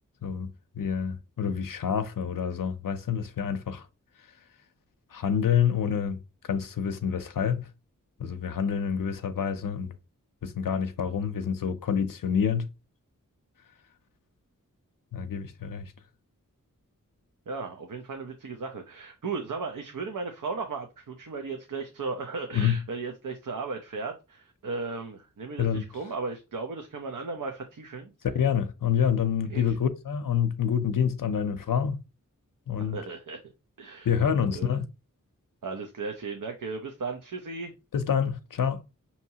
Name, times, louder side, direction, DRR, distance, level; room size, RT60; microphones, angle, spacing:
voice 1, 0.8-3.9 5.1-6.2 6.4-7.7 8.2-9.9 10.4-12.7 15.1-15.9 22.5-22.8 25.6-25.8 28.3-32.0 32.7-33.0 34.0-34.8 37.9-38.8, left 7 dB, 85° left, 0.5 m, -27 dB
voice 2, 17.5-28.1 29.5-29.8 32.8-33.5 33.8-34.1 34.6-34.7 35.6-37.7, right 4 dB, 75° right, 0.7 m, -36 dB
5.5 x 2.9 x 2.8 m
wide cardioid pair, 80°, 32 cm